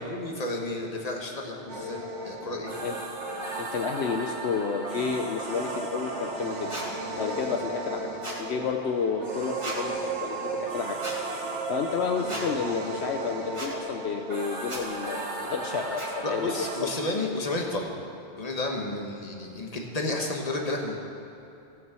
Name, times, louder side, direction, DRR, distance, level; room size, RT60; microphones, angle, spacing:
voice 1, 0.0-2.7 16.2-17.9 18.4-20.9, left 2 dB, 35° left, 1 dB, 1.4 m, -32 dB
sound 1, 1.7-16.8, right 2 dB, 80° right, 1.9 m, -35 dB
voice 2, 3.6-6.7 7.2-8.1 8.4-11.0 11.7-16.5 16.8-16.9, left 5 dB, 70° left, 4 dB, 1.0 m, -30 dB
sound 2, 6.7-6.9 8.2-8.4 9.6-9.8 11.0-11.2 12.3-12.5 13.5-13.7 14.7-14.8 16.0-16.1, right 1 dB, 25° right, 1.8 m, -35 dB
15.5 x 6.3 x 7.4 m, 2.8 s
omnidirectional pair, 1.2 m